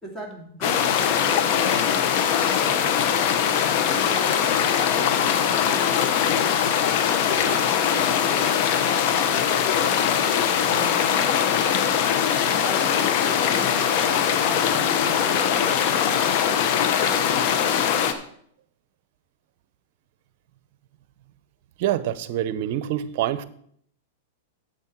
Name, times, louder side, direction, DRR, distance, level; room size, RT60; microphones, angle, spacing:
voice 1, 0.0-3.0 3.9-6.1 7.2-8.7 9.2-11.2 12.5-15.6, right 2 dB, 10° left, 0 dB, 2.5 m, -39 dB
sound 1, 0.6-18.1, left 8 dB, 55° left, 1.0 m, -21 dB
voice 2, 21.8-23.4, right 12 dB, 55° right, 15 dB, 0.7 m, -26 dB
9.6 x 8.1 x 4.5 m, 0.66 s
hypercardioid pair, 120°, 0 cm